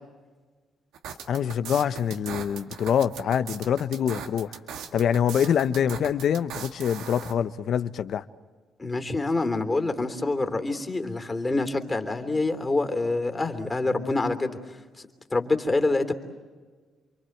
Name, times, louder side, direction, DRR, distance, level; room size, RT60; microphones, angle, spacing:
sound 1, 0.9-7.3, right 7 dB, 90° right, 2.0 m, -39 dB
voice 1, 1.3-4.5 4.9-8.2, left 8 dB, 65° left, 1.0 m, -25 dB
voice 2, 8.8-14.6 15.0-16.1, left 2 dB, 20° left, 3.2 m, -26 dB
29.0 x 23.5 x 7.9 m
cardioid pair, 90°, 0 cm